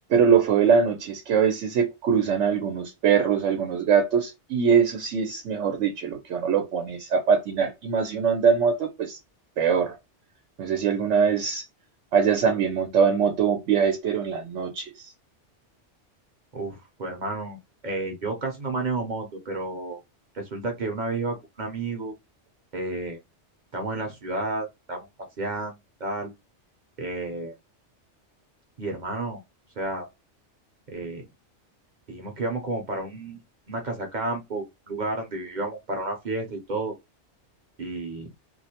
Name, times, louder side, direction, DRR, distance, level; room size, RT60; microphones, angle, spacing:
voice 1, 0.1-9.2 9.6-10.0 10.6-11.6 12.1-15.1, right 6 dB, 90° right, 0.9 m, -22 dB
voice 2, 16.5-20.0 20.3-22.1 22.7-23.2 23.7-25.1 25.4-26.3 27.0-27.5 28.8-29.4 29.8-30.1 30.9-31.2 32.1-33.4 33.7-37.0 37.8-38.3, right 2 dB, 50° right, 0.7 m, -31 dB
2.4 x 2.0 x 2.7 m
omnidirectional pair, 1.2 m